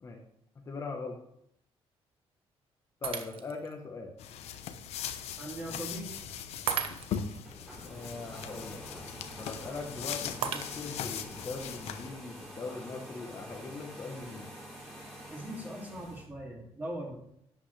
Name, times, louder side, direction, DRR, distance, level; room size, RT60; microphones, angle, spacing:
voice 1, 0.7-1.2 3.0-4.1 5.7-5.9 7.8-9.1 9.4-14.5, left 4 dB, 30° left, 2 dB, 1.1 m, -41 dB
Shatter, 3.0-3.7 4.3-4.4 6.7-7.4 10.4-11.2, right 7 dB, 60° right, 0.9 m, -35 dB
sound 1, 4.2-12.1, left 8 dB, 85° left, 0.9 m, -40 dB
voice 2, 5.4-6.2 15.3-17.2, right 1 dB, 15° right, -1 dB, 2.6 m, -40 dB
sound 2, 7.4-16.3, equal, ahead, 3.6 m, -47 dB
11.5 x 8.8 x 3.3 m, 0.74 s
cardioid pair, 175°, 11 cm